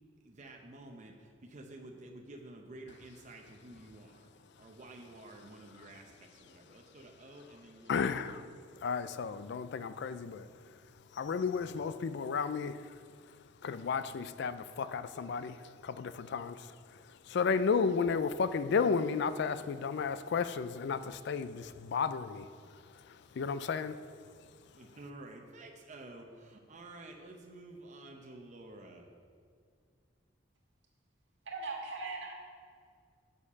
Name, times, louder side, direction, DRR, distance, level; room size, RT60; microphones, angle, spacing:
voice 1, 0.2-4.3 4.6-8.1 24.7-29.1, right 2 dB, 40° right, 0.7 m, -51 dB
voice 2, 7.9-8.5 8.8-10.8 11.1-13.4 13.6-24.0, left 5 dB, 65° left, 0.4 m, -33 dB
voice 3, 31.5-32.3, right 3 dB, 75° right, 1.9 m, -39 dB
7.3 x 6.5 x 5.7 m
head